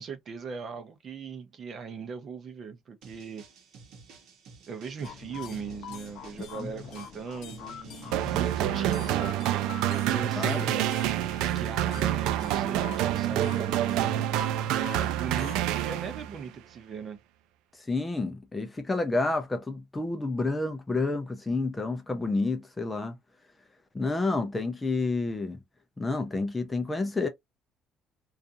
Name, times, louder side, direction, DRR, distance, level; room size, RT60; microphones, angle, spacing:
voice 1, 0.0-3.4 4.7-11.0 11.4-14.2 14.7-15.6 15.8-17.2, right 6 dB, 35° right, 0.6 m, -39 dB
sound 1, 3.0-8.7, right 4 dB, 65° right, 1.0 m, -52 dB
sound 2, 5.0-15.6, left 8 dB, 70° left, 0.6 m, -44 dB
sound 3, 8.1-16.4, right 12 dB, 85° right, 0.3 m, -27 dB
voice 2, 10.4-10.8 17.9-23.2 23.9-25.6 26.0-27.3, left 3 dB, 15° left, 0.5 m, -29 dB
2.5 x 2.4 x 2.6 m
cardioid pair, 155°, 0 cm